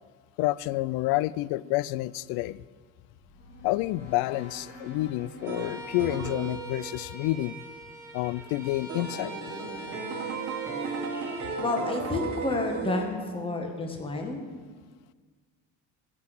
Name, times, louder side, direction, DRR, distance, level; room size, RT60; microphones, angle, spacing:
voice 1, 0.4-2.6 3.6-7.6 8.1-9.3, left 17 dB, 75° left, 20 dB, 0.5 m, -29 dB
sound 1, 2.9-8.1, left 2 dB, 45° left, 2.7 m, -49 dB
Bowed string instrument, 5.4-11.7, equal, 5° right, 2.5 m, -43 dB
sound 2, 5.5-7.0 8.9-13.0, right 5 dB, 35° right, 1.6 m, -35 dB
voice 2, 11.6-14.4, left 3 dB, 15° left, 2 dB, 1.5 m, -30 dB
14.5 x 6.2 x 7.8 m, 1.5 s
cardioid pair, 125°, 37 cm